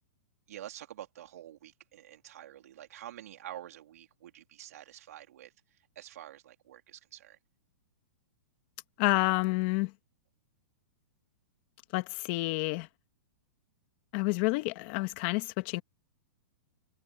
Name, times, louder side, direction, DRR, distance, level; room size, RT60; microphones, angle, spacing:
voice 1, 0.5-5.5 6.0-7.4, right 12 dB, 70° right, 3.6 m, -47 dB
voice 2, 9.0-9.9 11.9-12.9 14.1-15.8, left 24 dB, 40° left, 1.8 m, -29 dB
hypercardioid pair, 150°, 9 cm